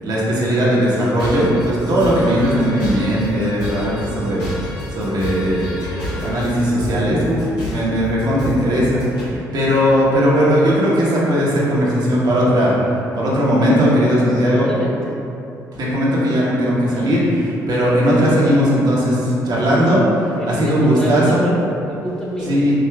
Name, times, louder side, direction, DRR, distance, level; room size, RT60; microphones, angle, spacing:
voice 1, 0.0-12.7 13.1-14.7 15.8-21.4 22.5-22.7, equal, 55° right, -7 dB, 1.0 m, -18 dB
sound 1, 0.8-9.2, left 1 dB, 75° left, 1.1 m, -30 dB
voice 2, 14.3-15.2 18.1-18.7 20.4-22.6, equal, 10° left, -6 dB, 1.1 m, -28 dB
4.9 x 2.7 x 2.2 m, 2.7 s
hypercardioid pair, 50°, 9 cm